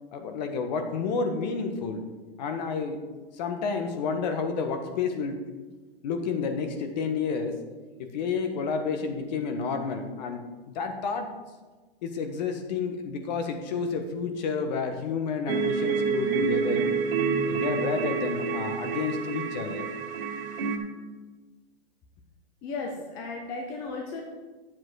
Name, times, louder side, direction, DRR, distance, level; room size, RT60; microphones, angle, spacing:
voice 1, 0.1-2.1 2.4-3.0 3.3-5.4 6.0-7.6 8.0-11.3 12.0-16.9 17.4-19.9, left 5 dB, 40° left, 6 dB, 1.3 m, -30 dB
sound 1, 15.5-20.8, right 5 dB, 60° right, 2.2 m, -28 dB
voice 2, 22.6-24.3, left 3 dB, 10° left, 1 dB, 0.4 m, -35 dB
10.5 x 7.5 x 4.8 m, 1.3 s
hypercardioid pair, 155°, 32 cm